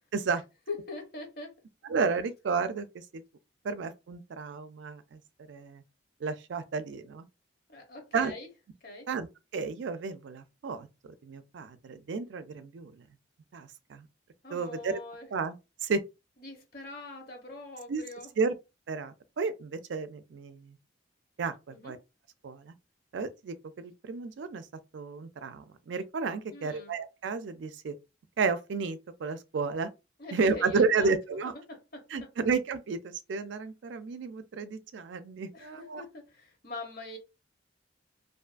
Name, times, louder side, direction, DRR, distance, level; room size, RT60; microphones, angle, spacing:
voice 1, 0.1-0.4 1.8-3.2 3.6-5.2 5.5-5.8 6.2-7.3 8.1-8.3 9.1-9.3 9.5-13.0 13.5-14.1 14.5-15.0 15.3-15.6 15.8-16.0 17.9-18.0 18.4-18.5 18.9-20.8 21.4-22.0 22.4-22.7 23.1-24.7 24.9-28.0 28.4-29.9 30.3-31.5 32.1-36.0, right 4 dB, 75° right, 0.4 m, -32 dB
voice 2, 0.7-1.5 7.7-8.5 8.8-9.1 14.4-15.3 16.4-18.3 21.7-21.9 26.5-26.9 30.2-31.1 31.4-32.0 35.5-37.2, left 2 dB, 55° left, 0.9 m, -43 dB
2.5 x 2.3 x 2.4 m
head